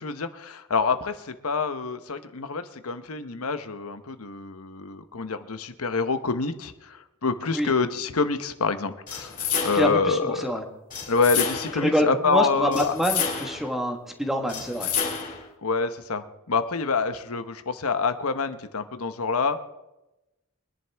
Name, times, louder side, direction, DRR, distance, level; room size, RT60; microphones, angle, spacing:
voice 1, 0.0-9.4 9.6-10.7 11.1-13.0 15.6-19.6, left 4 dB, 70° left, 9 dB, 1.0 m, -27 dB
sound 1, 9.1-10.0 10.9-11.9 12.7-13.7 14.5-15.5, left 6 dB, 40° left, 2.5 m, -29 dB
voice 2, 9.7-10.6 11.8-14.9, equal, ahead, 3 dB, 1.4 m, -26 dB
24.0 x 11.0 x 3.5 m, 0.97 s
head